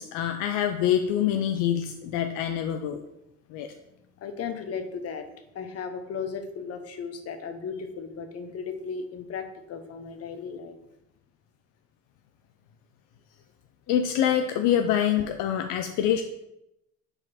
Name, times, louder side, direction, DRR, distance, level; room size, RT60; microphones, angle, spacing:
voice 1, 0.0-3.0 3.5-3.7 13.9-16.2, left 10 dB, 75° left, 6 dB, 0.5 m, -25 dB
voice 2, 4.2-5.3 5.5-10.8 13.9-14.0, left 5 dB, 50° left, 8 dB, 0.9 m, -36 dB
5.2 x 4.4 x 4.2 m, 0.86 s
supercardioid pair, 80°, 31 cm